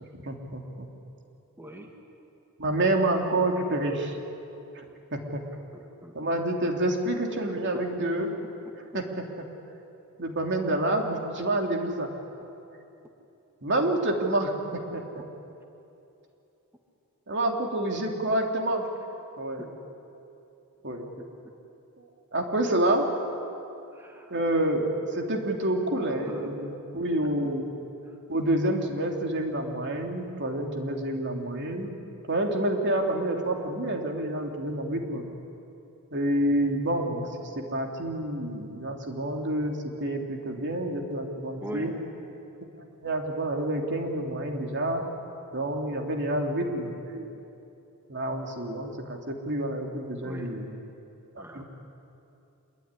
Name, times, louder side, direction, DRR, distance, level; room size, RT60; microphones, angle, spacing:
voice 1, 0.1-0.9 2.6-4.2 4.7-4.8 5.1-5.4 6.1-8.3 8.9-9.5 10.2-12.1 13.6-15.0 17.3-18.9 19.4-19.7 20.8-21.1 22.0-23.1 24.3-27.7 28.3-31.9 32.3-35.2 36.1-41.9 43.0-45.1 45.5-47.3 48.1-50.7 51.4-51.6, right 1 dB, 55° right, 2 dB, 3.1 m, -28 dB
voice 2, 1.6-1.9 5.7-6.1 7.7-7.8 19.6-19.7 21.2-21.3 23.9-24.3 26.0-26.5 41.6-41.9 50.2-50.5 51.4-51.6, equal, 10° right, 2 dB, 2.0 m, -41 dB
26.0 x 22.5 x 9.9 m, 2.8 s
head